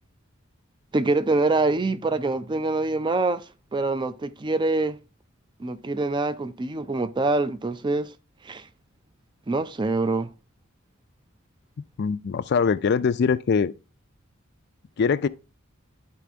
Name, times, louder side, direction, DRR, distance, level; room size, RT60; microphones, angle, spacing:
voice 1, 0.9-5.0 5.6-8.2 8.4-8.7 9.5-10.3, right 2 dB, 20° right, 0.4 m, -25 dB
voice 2, 12.0-13.7 15.0-15.3, left 5 dB, 50° left, 0.4 m, -22 dB
11.5 x 4.2 x 3.5 m
head